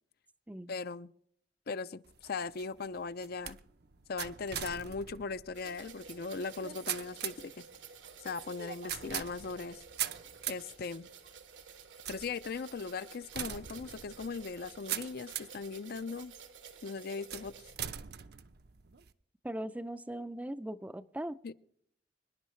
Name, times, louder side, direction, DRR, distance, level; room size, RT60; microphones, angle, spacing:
voice 1, 0.7-1.1 1.7-3.6 4.1-7.6 8.2-9.8 10.5-11.1 12.1-16.3 16.8-17.5 21.4-21.5, left 4 dB, 55° left, 0.5 m, -39 dB
sound 1, 2.0-15.7 16.2-16.7 17.3-19.1, right 10 dB, 60° right, 0.7 m, -42 dB
sound 2, 5.5-17.8, right 6 dB, 85° right, 1.6 m, -52 dB
voice 2, 19.4-21.4, right 1 dB, 10° right, 0.4 m, -39 dB
25.5 x 10.5 x 3.1 m
head